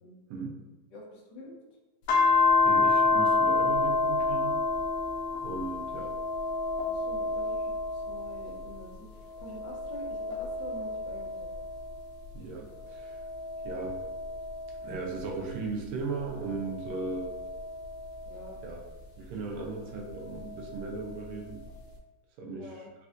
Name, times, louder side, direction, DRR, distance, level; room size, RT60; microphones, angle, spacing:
voice 1, 0.9-1.6 6.9-11.5 18.3-18.6 19.6-19.7 22.4-22.9, left 1 dB, 70° left, -2 dB, 1.1 m, -47 dB
sound 1, 2.1-8.8 9.3-12.1 12.7-15.5 16.3-18.7 20.1-21.1, left 3 dB, 85° left, 1.5 m, -29 dB
voice 2, 2.6-4.6 5.4-6.1 12.3-13.2 13.6-14.0 14.8-17.4 18.6-18.8 19.2-21.7 22.4-22.7, right 4 dB, 80° right, 1 dB, 1.5 m, -37 dB
4.2 x 2.5 x 2.4 m, 1.1 s
omnidirectional pair, 2.4 m